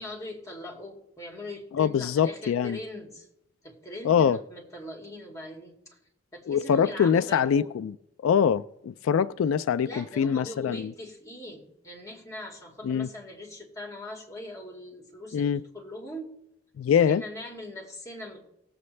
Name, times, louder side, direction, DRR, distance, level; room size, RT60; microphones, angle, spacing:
voice 1, 0.0-3.3 3.6-6.0 6.3-7.8 9.8-16.3 17.0-18.5, left 1 dB, 15° left, 2.4 m, -41 dB
voice 2, 1.7-2.8 4.0-4.4 6.5-7.9 8.2-10.9 12.8-13.1 15.3-15.6 16.8-17.2, left 7 dB, 85° left, 0.3 m, -24 dB
18.5 x 7.9 x 3.2 m
head